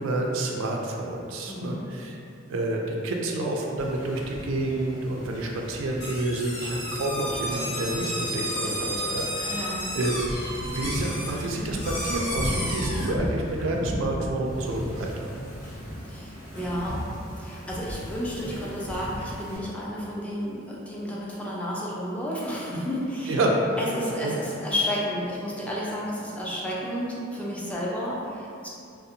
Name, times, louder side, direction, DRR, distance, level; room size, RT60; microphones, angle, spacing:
voice 1, 0.0-2.2 2.5-15.5 23.3-23.6 24.2-24.3, right 2 dB, 85° right, 0 dB, 0.4 m, -29 dB
voice 2, 1.5-1.9 9.5-9.9 16.0-17.1 17.4-23.4 23.8-28.7, equal, 5° left, -6 dB, 0.3 m, -31 dB
Wind / Ocean, 3.8-19.6, equal, 75° left, 0.8 m, -36 dB
sound 1, 6.0-13.1, equal, 90° left, 1.3 m, -32 dB
2.6 x 2.0 x 2.6 m, 2.6 s
head